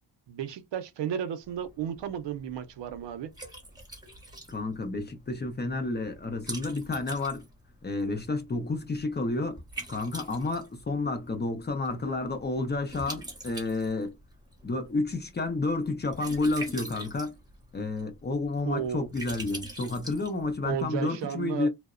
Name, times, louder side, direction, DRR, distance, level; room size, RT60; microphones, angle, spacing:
voice 1, 0.3-3.3 18.7-19.1 20.6-21.7, right 9 dB, 80° right, 0.6 m, -33 dB
Liquid, 1.4-20.9, right 1 dB, 10° right, 0.7 m, -45 dB
voice 2, 4.5-7.5 7.8-9.6 9.9-14.1 14.6-17.3 17.7-21.7, left 3 dB, 25° left, 0.4 m, -30 dB
2.8 x 2.0 x 2.4 m
wide cardioid pair, 160°, 42 cm